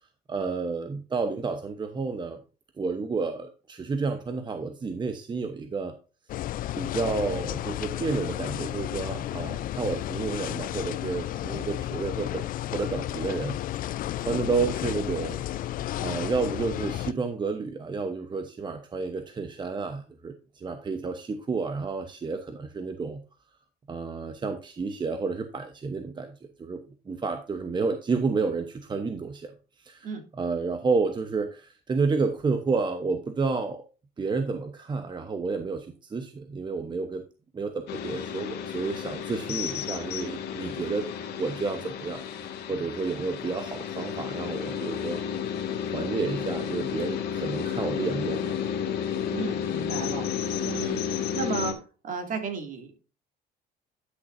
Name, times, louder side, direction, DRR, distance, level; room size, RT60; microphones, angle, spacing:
voice 1, 0.3-2.4 2.8-5.9 6.8-12.4 12.7-13.6 14.2-15.4 16.0-23.2 23.9-26.8 27.1-33.8 34.2-37.2 37.5-41.1 41.4-42.2 42.7-45.2 45.9-48.6, right 4 dB, 25° right, 7 dB, 0.9 m, -30 dB
sound 1, 6.3-17.1, left 13 dB, 55° left, 0.4 m, -32 dB
sound 2, 37.9-51.7, left 8 dB, 75° left, 1.8 m, -32 dB
voice 2, 49.3-50.3 50.6-51.0 51.3-51.7 52.0-53.0, right 5 dB, 50° right, 4 dB, 2.5 m, -33 dB
11.5 x 6.4 x 2.6 m, 0.34 s
cardioid pair, 110°, 17 cm